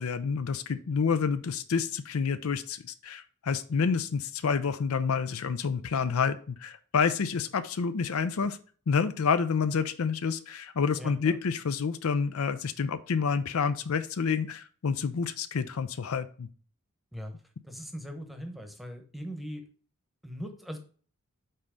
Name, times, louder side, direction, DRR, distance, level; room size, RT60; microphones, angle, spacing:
voice 1, 0.0-8.6 8.9-16.5, left 5 dB, 75° left, 12 dB, 0.5 m, -28 dB
voice 2, 11.0-11.4 17.1-17.3 17.6-19.7 20.2-20.8, equal, ahead, 5 dB, 1.0 m, -40 dB
5.6 x 4.1 x 5.0 m, 0.42 s
head